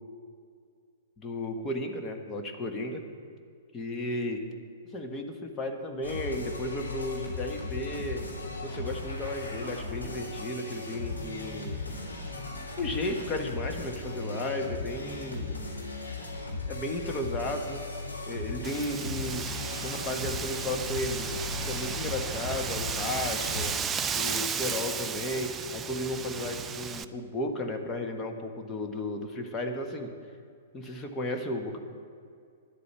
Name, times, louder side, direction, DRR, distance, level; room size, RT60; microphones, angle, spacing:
voice 1, 1.2-3.0 3.7-4.4 4.9-8.2 8.6-11.7 12.8-15.6 16.7-17.8 18.3-19.5 19.8-21.3 21.6-23.8 24.1-30.1 30.7-31.8, left 1 dB, 20° left, 3 dB, 1.4 m, -34 dB
sound 1, 6.0-23.7, left 3 dB, 80° left, 2.6 m, -37 dB
Wind, 18.6-27.0, right 6 dB, 20° right, 0.4 m, -34 dB
10.5 x 8.3 x 8.2 m, 2.2 s
figure-of-eight pair, 105°, 0 cm